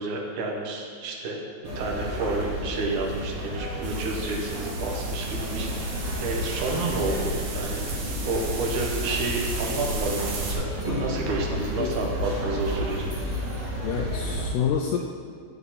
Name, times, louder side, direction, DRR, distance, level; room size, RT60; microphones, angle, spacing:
voice 1, 0.0-1.4 1.8-5.7 6.2-7.8 8.2-10.7 11.0-13.1, right 3 dB, 80° right, -1 dB, 1.7 m, -30 dB
sound 1, 1.6-14.5, equal, 25° right, 3.2 m, -31 dB
sound 2, 3.8-10.5, right 2 dB, 65° right, 2.2 m, -35 dB
sound 3, 5.5-12.4, left 1 dB, 40° left, 0.7 m, -44 dB
voice 2, 11.5-11.9 13.8-15.0, left 8 dB, 85° left, 2 dB, 2.3 m, -28 dB
12.5 x 8.0 x 4.2 m, 2.1 s
omnidirectional pair, 5.3 m